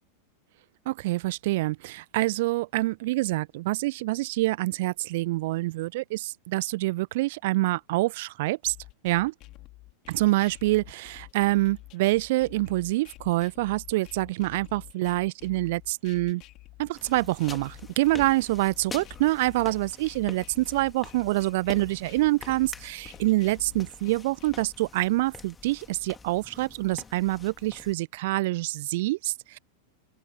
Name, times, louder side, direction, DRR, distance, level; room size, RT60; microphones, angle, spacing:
voice 1, 0.9-8.7 9.0-9.3 10.1-16.4 16.8-29.6, right 19 dB, 50° right, 0.6 m, -26 dB
sound 1, 8.7-24.7, left 19 dB, 40° left, 2.7 m, -49 dB
sound 2, 16.9-27.9, left 5 dB, 15° left, 2.6 m, -46 dB
open air
figure-of-eight pair, 90°, 0 cm